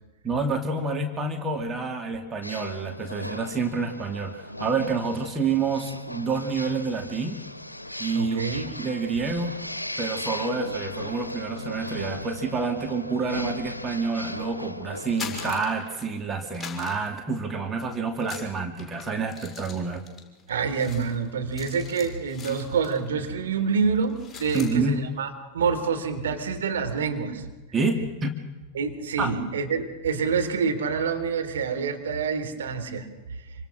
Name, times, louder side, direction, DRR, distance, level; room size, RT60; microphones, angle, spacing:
voice 1, 0.2-7.4 8.0-9.5 10.0-20.1 24.5-25.1 27.7-28.3 29.2-29.3, right 4 dB, 20° right, 4 dB, 2.6 m, -28 dB
sound 1, 2.4-15.6, left 1 dB, 85° left, 1.1 m, -37 dB
voice 2, 8.1-8.7 20.5-25.3 25.5-27.4 28.7-33.4, right 5 dB, 65° right, 4 dB, 3.7 m, -27 dB
sound 2, 15.0-16.2 16.5-17.8 18.2-23.1 23.4-23.6 24.0-24.8, left 5 dB, 15° left, 6.1 m, -42 dB
27.0 x 25.5 x 6.3 m, 1.1 s
figure-of-eight pair, 90°, 0 cm